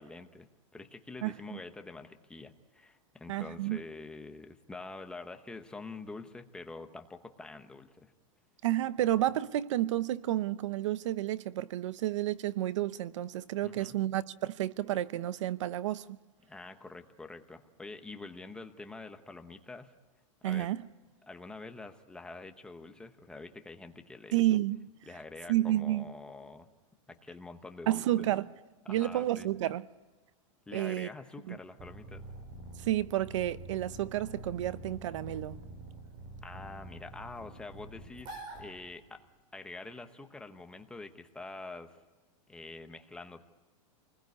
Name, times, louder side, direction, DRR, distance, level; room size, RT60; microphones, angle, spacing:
voice 1, 0.0-8.1 13.6-14.0 16.5-19.9 20.4-20.7 21.2-24.4 25.1-26.7 27.1-28.3 28.8-29.5 30.7-32.2 36.4-39.2 39.5-42.0 42.5-43.4, left 3 dB, 5° left, 0.9 m, -46 dB
voice 2, 3.3-3.8 8.6-16.2 20.4-20.8 24.3-24.8 25.5-26.0 27.9-28.5 28.9-29.8 30.7-31.1 31.5-31.6 32.8-35.6, right 14 dB, 60° right, 0.8 m, -30 dB
sound 1, 31.8-39.3, right 2 dB, 30° right, 4.9 m, -46 dB
28.5 x 20.5 x 9.6 m
supercardioid pair, 170°, 17 cm